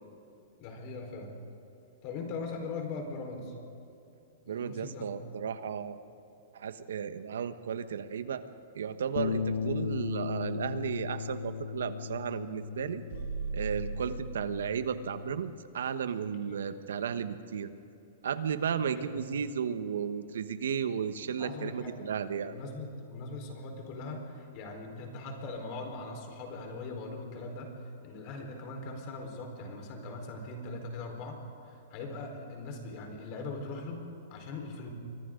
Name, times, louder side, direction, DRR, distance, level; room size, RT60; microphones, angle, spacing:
voice 1, 0.6-1.3 2.0-3.5 4.5-5.1 16.5-16.6 18.8-19.3 21.4-22.1 22.4-27.8 28.0-34.9, left 3 dB, 35° left, 2 dB, 4.4 m, -40 dB
voice 2, 4.5-6.0 6.5-8.4 8.7-13.0 13.5-17.7 18.2-22.6, right 7 dB, 90° right, 10 dB, 1.3 m, -34 dB
sound 1, 9.2-15.4, left 6 dB, 75° left, 1.2 m, -37 dB
sound 2, 13.1-14.9, right 4 dB, 60° right, 5.1 m, -37 dB
29.5 x 24.0 x 3.9 m, 2.9 s
hypercardioid pair, 160°, 0 cm